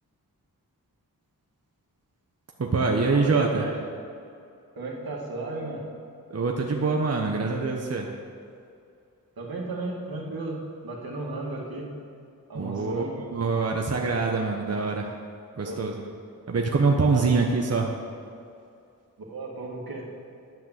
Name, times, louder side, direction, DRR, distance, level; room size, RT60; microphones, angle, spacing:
voice 1, 2.6-3.6 6.3-8.1 12.5-15.1 15.6-15.9 16.5-17.9, right 4 dB, 45° right, 1 dB, 1.0 m, -24 dB
voice 2, 3.1-3.8 4.7-5.8 9.4-11.9 12.5-13.1 15.6-15.8 17.1-17.4 19.3-20.1, right 2 dB, 80° right, -2 dB, 2.2 m, -34 dB
11.0 x 5.9 x 7.5 m, 2.5 s
cardioid pair, 50°, 36 cm